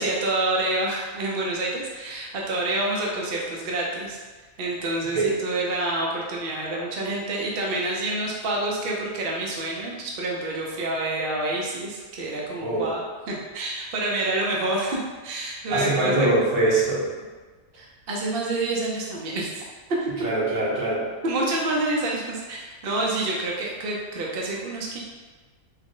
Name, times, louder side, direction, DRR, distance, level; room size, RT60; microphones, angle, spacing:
voice 1, 0.0-4.2 4.6-16.3 17.8-19.6 20.0-20.1 21.2-25.0, right 2 dB, 55° right, -3 dB, 0.7 m, -28 dB
voice 2, 15.7-17.1 20.2-21.0, right 2 dB, 75° right, -6 dB, 1.5 m, -23 dB
3.7 x 2.0 x 3.7 m, 1.3 s
omnidirectional pair, 1.5 m